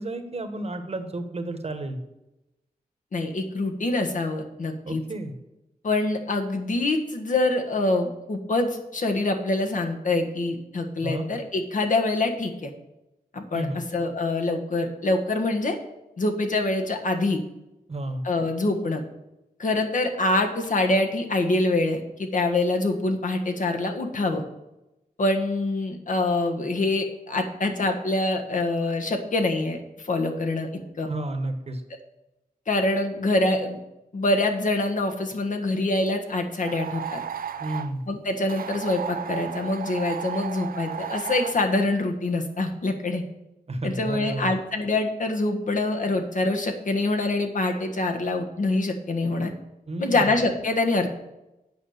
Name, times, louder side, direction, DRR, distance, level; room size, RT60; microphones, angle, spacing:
voice 1, 0.0-2.0 4.8-5.3 11.0-11.3 13.5-13.8 17.9-18.2 31.1-31.8 37.6-38.0 43.7-44.5 49.9-50.4, right 1 dB, 40° right, 7 dB, 1.3 m, -31 dB
voice 2, 3.1-5.0 5.8-12.7 13.3-15.8 16.2-17.4 18.2-19.0 19.6-24.4 25.2-30.7 31.0-31.1 32.7-33.8 34.1-37.2 38.1-43.2 43.8-49.5 50.0-51.1, left 2 dB, 55° left, 4 dB, 1.4 m, -25 dB
sound 1, 36.6-37.9 38.5-41.6, right 8 dB, 65° right, 0.5 m, -34 dB
8.5 x 5.6 x 6.6 m, 0.93 s
wide cardioid pair, 95°, 16 cm